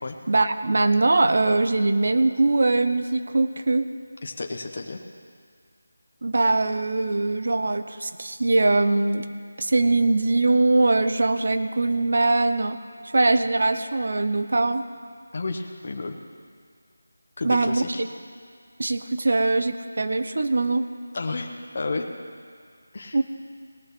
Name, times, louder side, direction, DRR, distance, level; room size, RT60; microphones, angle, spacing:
voice 1, 0.3-3.9 6.2-9.3 9.6-12.8 13.1-14.8 17.4-18.1 18.8-20.8 23.1-23.2, right 2 dB, 50° right, 10 dB, 0.8 m, -22 dB
voice 2, 4.2-5.0 15.3-16.1 17.4-17.9 21.1-21.5 21.7-22.1 22.9-23.2, left 3 dB, 40° left, 3 dB, 1.0 m, -31 dB
19.0 x 6.4 x 6.1 m, 2.2 s
figure-of-eight pair, 175°, 0 cm